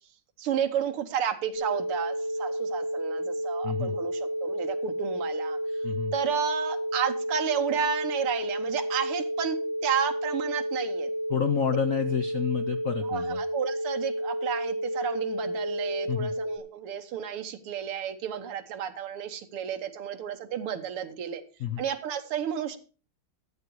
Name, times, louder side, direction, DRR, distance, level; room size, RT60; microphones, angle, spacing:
voice 1, 0.4-5.6 6.1-9.6 9.8-11.1 13.0-21.4 21.8-22.8, right 8 dB, 85° right, 7 dB, 2.0 m, -32 dB
sound 1, 1.5-16.6, equal, 35° left, 1.9 m, -31 dB
voice 2, 3.6-4.0 5.8-6.1 11.3-13.4 16.1-16.3 21.6-21.8, left 9 dB, 70° left, 8 dB, 0.8 m, -29 dB
13.5 x 8.2 x 4.6 m, 0.36 s
omnidirectional pair, 2.4 m